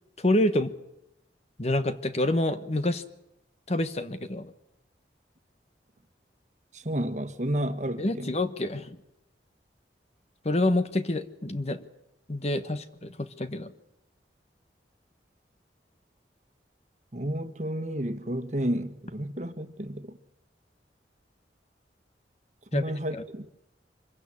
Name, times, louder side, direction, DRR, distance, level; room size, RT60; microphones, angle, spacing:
voice 1, 0.2-0.7 1.6-3.0 3.7-4.5 8.0-9.0 10.4-11.9 12.3-13.7 22.7-23.2, left 1 dB, 35° left, 1.3 m, -27 dB
voice 2, 6.7-8.3 17.1-20.2 22.7-23.5, right 1 dB, 40° right, 1.5 m, -31 dB
25.5 x 16.0 x 9.8 m
head